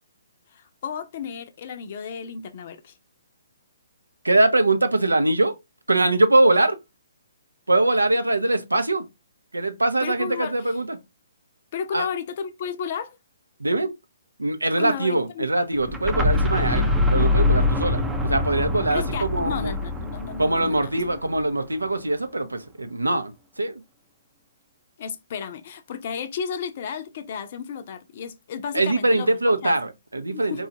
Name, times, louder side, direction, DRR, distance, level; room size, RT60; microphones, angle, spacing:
voice 1, 0.5-2.9 10.0-10.5 11.7-13.2 14.8-15.5 18.9-20.9 25.0-29.3 29.6-29.8 30.3-30.6, left 7 dB, 45° left, 0.5 m, -33 dB
voice 2, 4.2-5.5 5.9-6.8 7.7-9.1 9.5-11.0 11.9-12.1 13.6-13.9 14.4-19.7 20.4-23.3 23.6-23.7 28.7-30.7, right 2 dB, 85° right, 0.6 m, -22 dB
sound 1, 15.8-21.6, left 2 dB, 5° right, 0.5 m, -24 dB
4.2 x 2.3 x 2.7 m
figure-of-eight pair, 130°, 0 cm